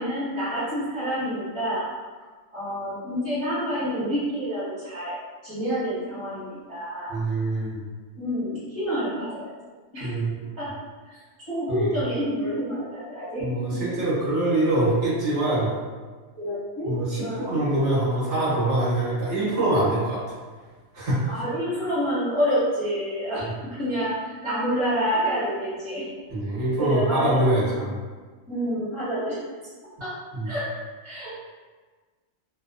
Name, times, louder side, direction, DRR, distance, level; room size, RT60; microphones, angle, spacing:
voice 1, 0.0-1.9 2.5-5.2 5.4-7.2 8.2-9.5 9.9-10.1 10.6-10.7 11.5-13.4 13.7-13.9 16.4-16.9 17.2-17.6 21.3-23.5 23.7-26.0 26.8-27.9 28.5-29.4 30.0-30.1 30.4-30.7 31.0-31.3, equal, 25° right, -11 dB, 1.2 m, -28 dB
voice 2, 7.1-7.8 10.0-10.4 11.7-11.9 13.4-15.7 16.8-20.2 20.9-21.3 26.3-28.0 30.3-30.5, right 1 dB, 75° right, -10 dB, 1.3 m, -24 dB
2.8 x 2.0 x 2.5 m, 1.4 s
omnidirectional pair, 1.2 m